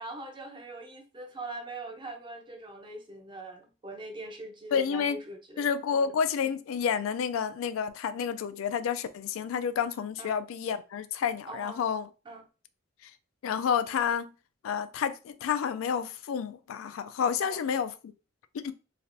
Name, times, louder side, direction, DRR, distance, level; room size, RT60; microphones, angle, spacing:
voice 1, 0.0-6.1 10.2-10.4 11.5-11.8 12.3-12.5 17.4-17.6, right 2 dB, 25° right, 0.6 m, -42 dB
voice 2, 4.7-5.2 5.6-12.1 13.0-13.1 13.4-14.3 14.6-17.9 18.5-18.7, left 7 dB, 85° left, 0.3 m, -30 dB
3.2 x 2.4 x 2.6 m
head